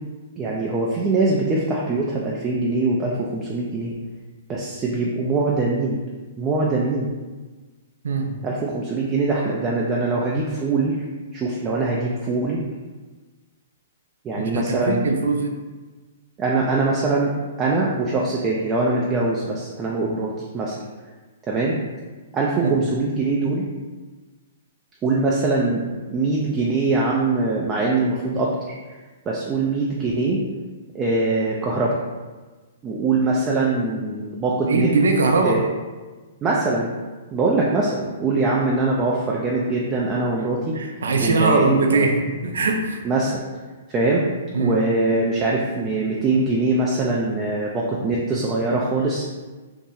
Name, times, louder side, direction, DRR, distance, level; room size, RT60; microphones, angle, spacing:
voice 1, 0.4-3.9 4.5-6.0 6.4-7.1 8.4-11.0 11.3-12.6 14.2-15.0 16.4-17.3 17.6-20.7 21.5-21.8 22.3-23.6 25.0-25.8 26.1-28.8 29.3-30.4 30.9-32.0 32.8-34.9 35.4-35.6 36.4-36.9 37.3-40.7 41.2-42.0 43.0-43.3 43.9-44.2 44.6-49.3, right 3 dB, 20° right, -3 dB, 0.4 m, -22 dB
voice 2, 14.5-15.5 22.6-22.7 34.7-35.6 40.8-43.0 44.5-44.7, right 3 dB, 80° right, 3 dB, 0.4 m, -20 dB
2.7 x 2.0 x 3.7 m, 1.3 s
hypercardioid pair, 140°, 0 cm